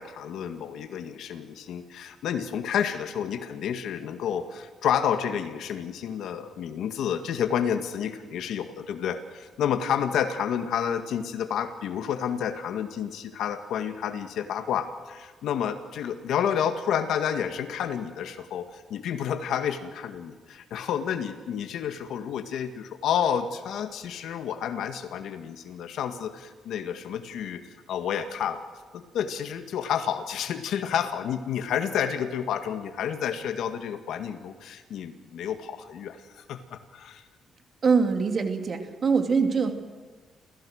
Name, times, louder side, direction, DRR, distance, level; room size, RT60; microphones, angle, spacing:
voice 1, 0.0-27.6 27.9-28.6 28.9-37.2, left 8 dB, 75° left, 8 dB, 1.8 m, -30 dB
voice 2, 37.8-39.7, right 5 dB, 45° right, 5 dB, 2.8 m, -23 dB
29.0 x 15.5 x 6.5 m, 1.4 s
cardioid pair, 90°, 0 cm